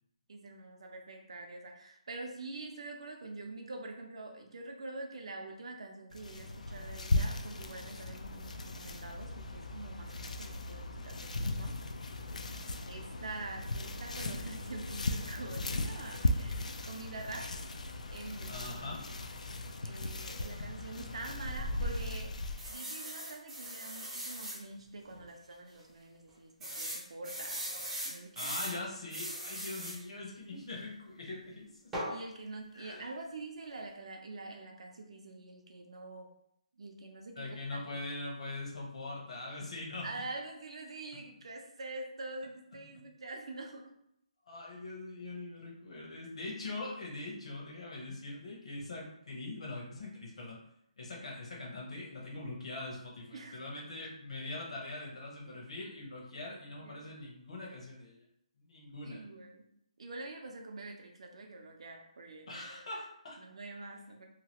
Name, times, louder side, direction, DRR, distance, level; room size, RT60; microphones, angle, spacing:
voice 1, 0.3-11.8 12.8-17.5 18.1-18.7 19.8-22.3 22.7-28.6 32.1-36.3 36.8-37.8 40.0-43.9 53.3-53.8 56.5-57.0 59.0-59.6 60.0-62.7 63.4-64.3, right 2 dB, 55° right, 2 dB, 0.6 m, -45 dB
sound 1, 6.1-22.8, left 2 dB, 80° left, 0.4 m, -37 dB
voice 2, 18.5-19.0 28.4-31.9 32.7-33.1 37.4-40.1 42.9-43.0 44.5-50.6 51.0-58.2 58.6-59.2 62.5-63.4, left 2 dB, 55° left, -3 dB, 1.0 m, -42 dB
sound 2, 22.6-24.6 25.1-25.2 25.5-25.6 26.6-28.8 29.1-30.0 31.9-32.2, right 1 dB, 5° right, 0.5 m, -39 dB
2.9 x 2.4 x 2.9 m, 0.74 s
hypercardioid pair, 175°, 4 cm